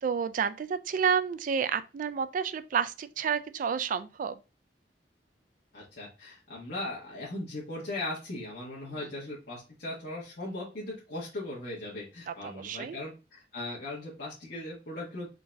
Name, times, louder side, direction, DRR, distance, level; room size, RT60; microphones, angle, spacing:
voice 1, 0.0-4.4 9.0-9.1 12.3-13.0, right 7 dB, 50° right, 0.3 m, -30 dB
voice 2, 5.7-15.3, left 2 dB, 65° left, 1.3 m, -38 dB
3.8 x 2.7 x 3.4 m
head